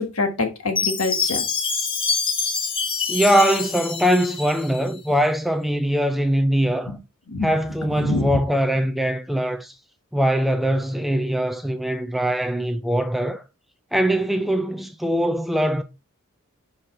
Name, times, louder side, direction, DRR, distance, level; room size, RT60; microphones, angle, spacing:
voice 1, 0.0-1.4 6.9-7.0 7.3-7.5 8.0-8.3, left 3 dB, 80° left, 1.6 m, -25 dB
Chime, 0.8-4.9, left 5 dB, 25° left, 1.0 m, -26 dB
voice 2, 3.1-7.0 7.4-9.7 10.1-13.4 13.9-15.8, equal, ahead, 0.4 m, -22 dB
6.0 x 5.0 x 4.2 m
head